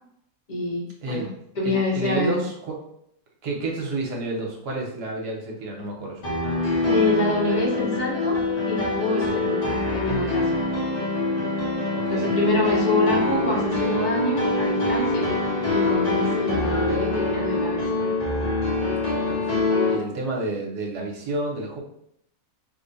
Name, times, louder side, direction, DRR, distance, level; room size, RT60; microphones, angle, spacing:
voice 1, 0.5-1.3 1.5-2.4 6.8-8.4 8.7-10.6 12.1-15.3 15.7-17.8, left 1 dB, 35° left, -4 dB, 0.7 m, -26 dB
voice 2, 1.0-1.4 1.6-2.7 3.4-6.2 11.9-12.3 19.3-21.8, right 2 dB, 65° right, -1 dB, 1.3 m, -30 dB
sound 1, 6.2-19.9, left 2 dB, 85° left, 0.3 m, -24 dB
3.2 x 2.1 x 3.8 m, 0.71 s
omnidirectional pair, 2.1 m